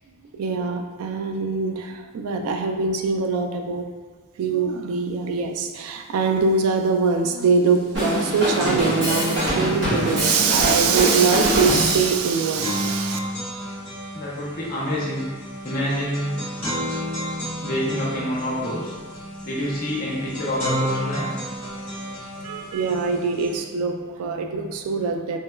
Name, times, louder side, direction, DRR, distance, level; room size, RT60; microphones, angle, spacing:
voice 1, 0.3-3.8 4.4-13.2 22.4-25.4, right 5 dB, 90° right, 8 dB, 0.3 m, -23 dB
sound 1, 7.7-7.8 8.1-23.6, equal, 10° left, 1.1 m, -32 dB
Drum kit, 7.9-12.1, equal, 55° right, 1.0 m, -23 dB
voice 2, 14.1-15.3 15.6-16.4 17.6-18.9 19.4-21.3, equal, 40° left, -6 dB, 0.7 m, -27 dB
3.1 x 2.2 x 2.2 m, 1.3 s
head